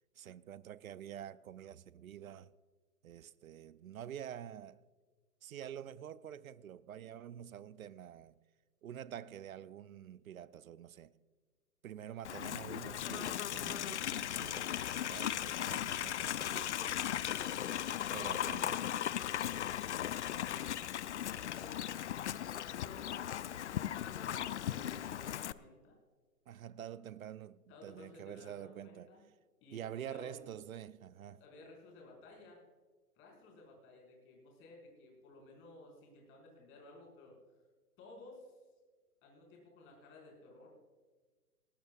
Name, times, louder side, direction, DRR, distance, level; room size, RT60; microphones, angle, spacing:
voice 1, 0.2-2.5 3.0-4.8 5.4-8.4 8.8-11.1 11.8-16.8 18.0-18.9 26.5-29.2 29.7-31.4, right 10 dB, 65° right, 0.7 m, -47 dB
Livestock farm animals working animals, 12.2-25.5, left 11 dB, 50° left, 0.5 m, -37 dB
voice 2, 16.7-17.7 17.9-19.9 20.2-20.6 21.2-23.5 23.9-26.0 27.7-29.2 29.6-30.4 31.2-32.6 33.1-37.3 38.0-38.6 39.2-40.7, left 2 dB, 25° left, 5.1 m, -56 dB
19.0 x 18.5 x 2.4 m
figure-of-eight pair, 125°, 46 cm